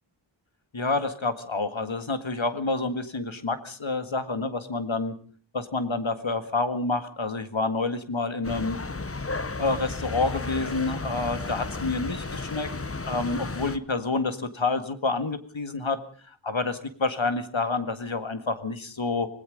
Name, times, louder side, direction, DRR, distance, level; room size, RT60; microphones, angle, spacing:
voice 1, 0.7-5.1 5.5-8.8 9.6-12.7 13.1-19.3, left 3 dB, 80° left, 9 dB, 2.0 m, -28 dB
sound 1, 8.4-13.8, left 3 dB, 30° left, 1.0 m, -33 dB
26.0 x 19.5 x 5.2 m, 0.43 s
wide cardioid pair, 40°, 46 cm